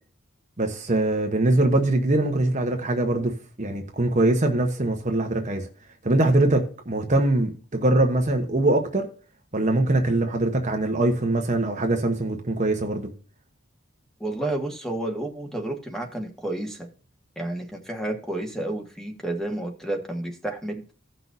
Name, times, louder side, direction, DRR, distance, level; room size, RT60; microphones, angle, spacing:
voice 1, 0.6-5.7 6.0-9.1 9.5-13.1, right 2 dB, 35° right, 1.0 m, -22 dB
voice 2, 14.2-16.9 17.3-20.8, right 1 dB, ahead, 1.5 m, -30 dB
16.5 x 6.0 x 2.7 m
head